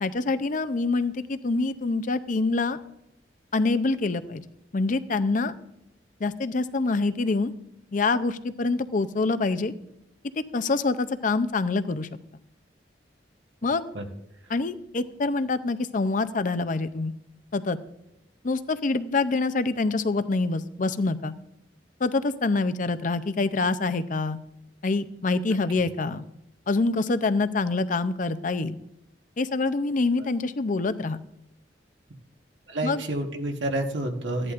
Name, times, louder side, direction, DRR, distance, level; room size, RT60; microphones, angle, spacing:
voice 1, 0.0-2.8 3.5-4.4 4.7-5.5 6.2-7.5 7.9-9.7 10.5-12.1 13.6-13.9 14.5-17.1 17.5-17.8 18.4-21.3 22.0-24.4 24.8-26.2 26.7-28.8 29.4-31.2 32.8-33.0, left 3 dB, 45° left, 12 dB, 0.6 m, -25 dB
voice 2, 32.7-34.5, right 1 dB, 85° right, 2 dB, 1.4 m, -29 dB
15.5 x 11.0 x 2.5 m, 0.83 s
head